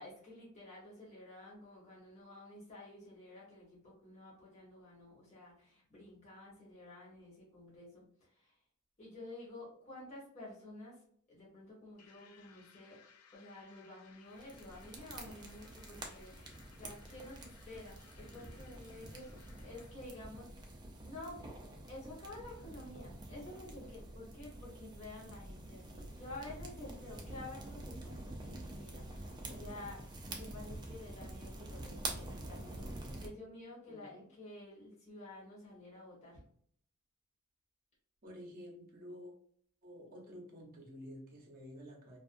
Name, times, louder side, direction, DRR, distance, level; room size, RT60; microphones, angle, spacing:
voice 1, 0.0-8.6 9.0-11.0 11.3-13.0 13.3-20.7 21.0-36.4, left 1 dB, 30° left, -7 dB, 0.9 m, -51 dB
sound 1, 12.0-20.3, left 7 dB, 75° left, 0.4 m, -63 dB
sound 2, 14.4-33.3, right 2 dB, 20° right, 0.3 m, -47 dB
voice 2, 33.9-34.3 38.2-39.3 39.8-42.2, equal, 40° right, 0 dB, 0.7 m, -51 dB
2.4 x 2.3 x 2.5 m, 0.63 s
head